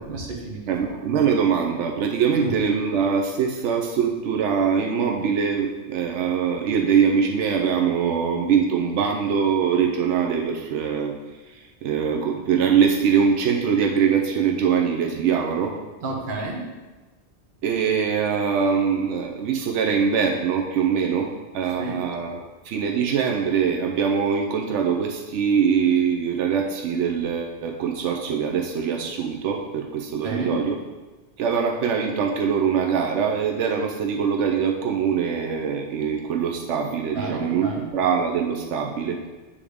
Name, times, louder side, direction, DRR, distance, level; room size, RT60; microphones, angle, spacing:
voice 1, 0.0-0.6 1.0-1.2 2.3-2.5 16.0-16.6 21.8-22.0 30.2-30.6 37.1-37.9, right 3 dB, 50° right, -1 dB, 1.1 m, -30 dB
voice 2, 0.7-11.2 11.5-15.7 17.6-30.8 31.4-39.2, right 7 dB, 85° right, 2 dB, 0.9 m, -23 dB
8.3 x 3.5 x 3.5 m, 1.2 s
omnidirectional pair, 1.2 m